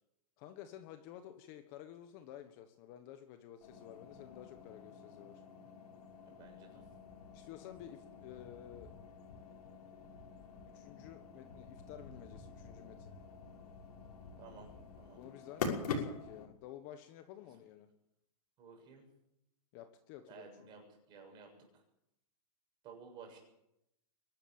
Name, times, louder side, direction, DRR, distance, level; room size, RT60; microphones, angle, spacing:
voice 1, 0.4-5.4 7.3-8.9 10.7-13.1 15.1-17.9 19.7-20.5, left 11 dB, 30° left, 8 dB, 1.4 m, -52 dB
sound 1, 3.6-16.5, left 4 dB, 75° left, 5.9 m, -46 dB
voice 2, 6.2-6.8 14.4-14.7 15.0-15.2 18.6-19.1 20.3-21.5 22.8-23.4, right 5 dB, 20° right, 2 dB, 7.1 m, -54 dB
23.5 x 12.5 x 8.9 m, 0.81 s
supercardioid pair, 170°, 20 cm